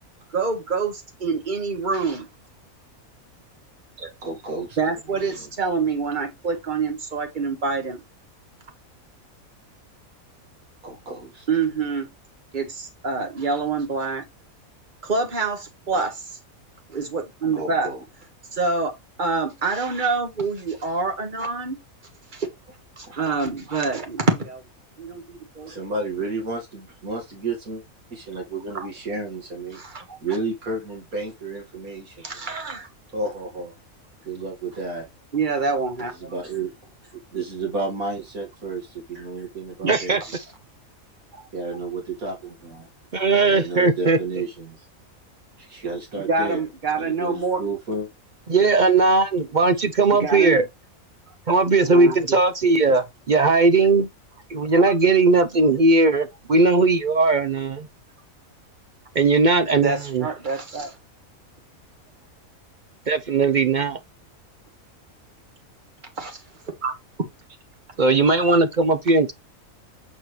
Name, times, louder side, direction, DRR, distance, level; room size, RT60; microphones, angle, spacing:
voice 1, 0.3-2.3 4.0-4.1 4.8-8.0 11.5-12.1 12.5-14.3 15.0-16.3 16.9-17.9 18.5-18.9 19.2-21.8 22.3-22.5 23.0-24.6 25.0-25.8 28.7-28.9 29.7-30.2 32.2-32.9 35.3-36.3 39.8-40.4 41.3-41.4 46.2-47.6 50.1-50.6 51.9-52.4 54.7-54.8 59.8-61.0 66.2-66.4 66.8-66.9, right 4 dB, 35° right, 1.6 m, -26 dB
voice 2, 4.2-4.8 5.1-5.5 10.8-11.5 15.9-16.0 17.4-18.0 23.0-23.2 25.7-27.8 28.1-29.8 30.2-32.4 33.1-33.7 34.2-35.1 36.2-36.7 37.3-40.2 41.5-42.9 43.5-44.9 45.6-46.6 47.0-48.1, right 3 dB, 85° right, 2.5 m, -31 dB
voice 3, 39.9-40.2 43.1-44.2 48.5-50.7 51.5-54.1 54.5-57.9 59.1-60.3 63.1-64.0 68.0-69.3, right 3 dB, 50° right, 0.5 m, -18 dB
8.4 x 4.3 x 3.2 m
omnidirectional pair, 1.5 m